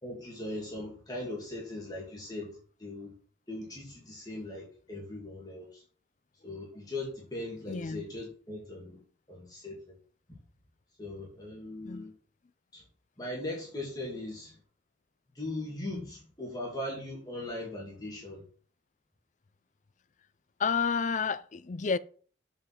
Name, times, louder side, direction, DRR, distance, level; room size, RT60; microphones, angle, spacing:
voice 1, 0.0-3.1 3.5-5.8 6.4-9.0 9.3-10.0 11.0-12.1 12.7-12.8 13.2-14.6 15.3-18.4, left 1 dB, 20° left, 2.3 m, -39 dB
voice 2, 7.7-8.1 11.8-12.1 20.6-22.0, left 5 dB, 40° left, 0.4 m, -30 dB
7.1 x 5.4 x 5.9 m
head